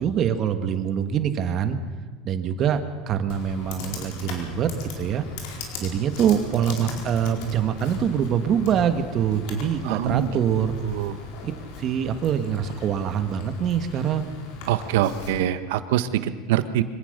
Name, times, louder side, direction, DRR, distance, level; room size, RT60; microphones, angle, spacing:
voice 1, 0.0-1.8 2.2-2.8 3.1-4.7 5.0-5.2 5.8-10.8 11.4-11.5 11.8-14.3, right 8 dB, 35° right, 9 dB, 1.5 m, -24 dB
Computer keyboard, 3.3-15.3, left 3 dB, 65° left, 4.6 m, -38 dB
voice 2, 9.8-10.3 10.8-11.2 14.7-16.8, right 11 dB, 80° right, 12 dB, 1.3 m, -24 dB
24.5 x 18.0 x 6.7 m, 1.4 s
supercardioid pair, 155°, 0 cm